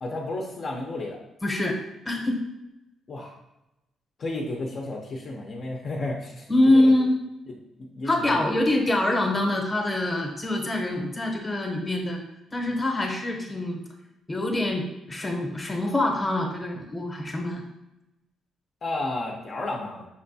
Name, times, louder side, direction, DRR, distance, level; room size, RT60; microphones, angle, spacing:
voice 1, 0.0-1.2 3.1-3.3 4.2-6.9 7.8-8.5 18.8-20.1, left 2 dB, 50° left, -1 dB, 0.5 m, -32 dB
voice 2, 1.4-1.8 2.0-2.4 6.5-7.1 8.0-12.2 12.5-13.8 14.3-17.6, left 1 dB, 15° left, 1 dB, 0.8 m, -24 dB
5.5 x 2.2 x 2.6 m, 0.92 s
cardioid pair, 90°, 0 cm